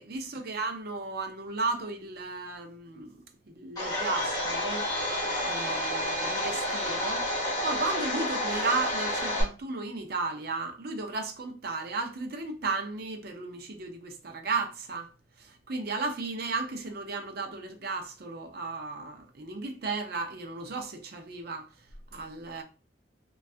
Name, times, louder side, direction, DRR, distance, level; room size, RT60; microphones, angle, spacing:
voice 1, 0.0-3.2 3.5-4.9 5.4-7.3 7.6-15.1 15.4-21.7 22.1-22.6, right 3 dB, 60° right, 0.6 m, -34 dB
Domestic sounds home sounds, 3.8-9.4, left 1 dB, 20° left, 1.2 m, -30 dB
2.6 x 2.3 x 3.2 m
head